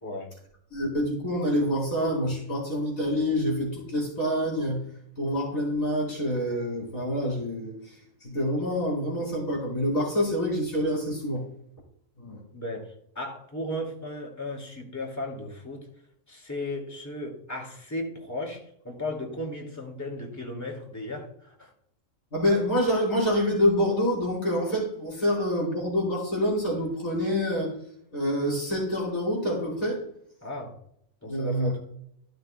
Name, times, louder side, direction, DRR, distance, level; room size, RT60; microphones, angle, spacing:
voice 1, 0.7-4.8 5.2-11.4 12.2-12.4 22.3-27.7 28.1-30.0 31.3-31.7, equal, 70° left, -5 dB, 4.2 m, -27 dB
voice 2, 12.5-15.9 16.3-21.7 30.4-30.7 31.2-31.8, left 1 dB, 10° left, 1 dB, 2.2 m, -35 dB
15.0 x 6.4 x 2.2 m, 0.70 s
omnidirectional pair, 1.5 m